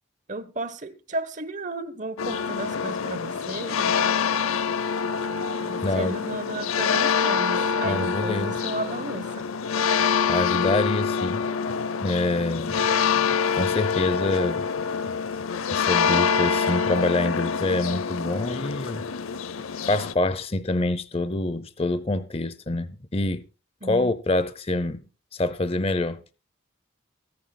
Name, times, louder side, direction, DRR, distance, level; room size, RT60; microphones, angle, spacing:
voice 1, 0.3-4.2 4.5-4.7 5.6-9.5 23.8-24.1, right 2 dB, 35° right, 1.0 m, -34 dB
sound 1, 2.2-20.1, left 6 dB, 90° left, 0.7 m, -26 dB
voice 2, 5.8-6.1 7.8-8.5 10.3-11.4 12.0-12.8 13.6-14.7 15.7-19.1 19.9-23.4 23.8-25.0 25.3-26.2, left 2 dB, 30° left, 0.6 m, -26 dB
24.0 x 9.7 x 2.3 m
head